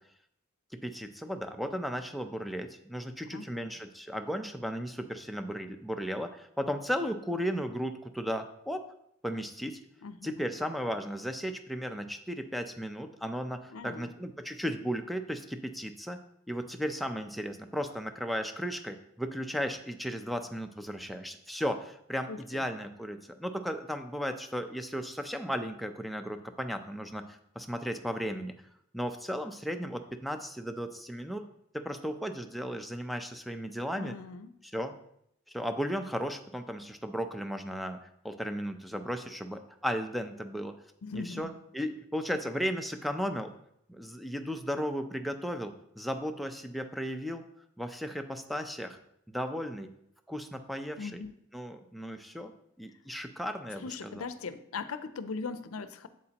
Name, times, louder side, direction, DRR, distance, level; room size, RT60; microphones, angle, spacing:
voice 1, 0.7-8.9 9.2-9.8 10.2-16.2 16.5-27.2 27.6-28.5 28.9-31.4 31.7-34.1 34.6-34.9 35.5-38.0 38.2-40.7 41.1-43.5 43.9-47.4 47.8-49.0 49.3-49.9 50.3-51.2 51.5-52.5 52.8-54.2, equal, ahead, 5 dB, 0.5 m, -35 dB
voice 2, 3.3-3.7 10.0-10.3 13.7-14.2 22.3-22.6 34.0-34.5 41.0-41.5 51.0-51.3 53.8-56.1, left 4 dB, 90° left, 12 dB, 0.5 m, -40 dB
8.2 x 7.5 x 2.9 m, 0.75 s
head